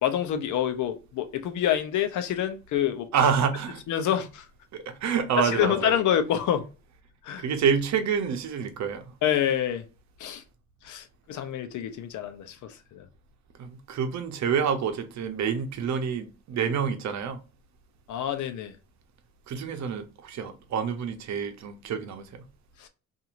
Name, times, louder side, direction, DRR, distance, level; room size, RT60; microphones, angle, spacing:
voice 1, 0.0-3.1 3.9-4.5 5.4-6.7 7.2-7.4 9.2-9.8 10.2-10.4 10.8-13.0 18.1-18.7 22.8-22.9, left 10 dB, 75° left, 0.7 m, -27 dB
voice 2, 3.1-3.8 4.7-6.0 7.4-9.1 13.6-17.4 19.5-22.4, right 7 dB, 65° right, 0.7 m, -28 dB
2.8 x 2.6 x 2.5 m
cardioid pair, 90°, 30 cm